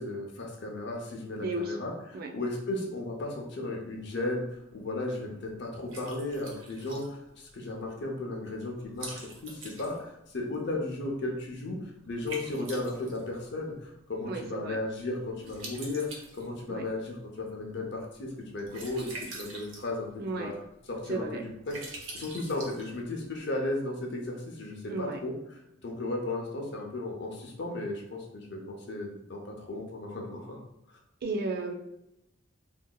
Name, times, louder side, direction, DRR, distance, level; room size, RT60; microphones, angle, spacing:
voice 1, 0.0-11.8 12.1-16.1 16.3-20.5 20.9-21.8 22.1-25.3 25.8-30.6 30.9-31.0, left 2 dB, 60° left, 0 dB, 0.7 m, -35 dB
voice 2, 1.4-1.8 2.1-2.3 14.2-14.8 16.7-16.8 20.2-20.5 21.1-21.4 24.9-25.2 31.2-31.7, right 2 dB, 50° right, 2 dB, 0.4 m, -33 dB
Liquid, 4.0-23.4, right 2 dB, 75° right, 0.7 m, -48 dB
3.8 x 2.6 x 2.3 m, 0.85 s
head